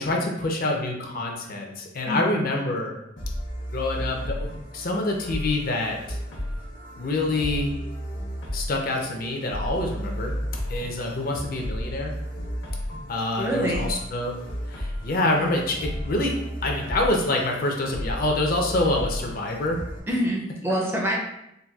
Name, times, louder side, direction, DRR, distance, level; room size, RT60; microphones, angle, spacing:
voice 1, 0.0-3.0 3.7-4.5 4.7-6.2 7.0-7.7 8.5-10.3 10.7-12.1 13.1-14.3 14.7-16.4 16.6-19.8, left 2 dB, 50° left, 1 dB, 0.5 m, -26 dB
sound 1, 3.2-20.0, equal, 80° left, 0.9 m, -33 dB
voice 2, 13.4-14.0 20.1-21.2, equal, 15° right, -1 dB, 0.4 m, -26 dB
3.9 x 2.2 x 2.3 m, 0.84 s
head